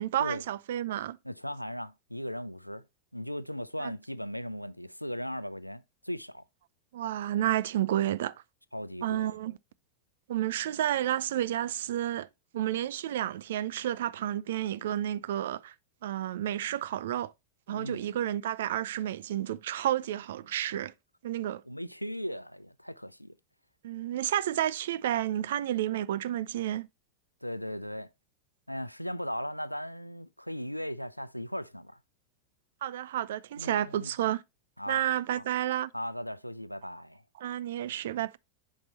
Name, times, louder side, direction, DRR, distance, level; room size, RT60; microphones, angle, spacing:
voice 1, 0.0-1.2 3.8-3.9 6.9-8.3 9.0-9.6 10.3-12.3 12.5-15.7 16.0-17.3 17.7-20.9 21.2-21.6 23.8-26.9 32.8-34.4 34.9-35.9 37.4-38.4, right 12 dB, 60° right, 0.4 m, -31 dB
voice 2, 1.2-2.9 3.1-6.4 8.7-9.3 17.7-18.0 21.7-23.3 27.4-28.1 28.7-32.0 33.6-34.1 34.8-35.0 35.3-35.4 35.9-37.2, equal, 90° left, 0.3 m, -37 dB
5.9 x 4.3 x 4.1 m
figure-of-eight pair, 90°, 0 cm